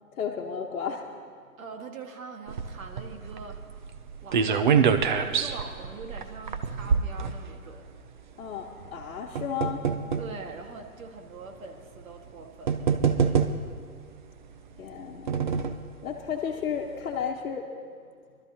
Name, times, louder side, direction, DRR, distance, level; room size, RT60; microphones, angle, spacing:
voice 1, 0.1-1.1 8.4-9.8 14.8-15.5 16.0-17.7, left 7 dB, 60° left, -1 dB, 1.1 m, -33 dB
voice 2, 1.6-3.6 4.2-7.9 10.2-13.4, right 4 dB, 65° right, 4 dB, 1.7 m, -43 dB
sound 1, 2.5-7.9 8.8-10.4 11.2-11.3 12.2-12.3 12.7-13.9 14.8-15.9 16.3-16.4 16.7-16.8, right 6 dB, 35° right, 0.5 m, -26 dB
23.5 x 12.5 x 2.8 m, 2.1 s
hypercardioid pair, 135°, 44 cm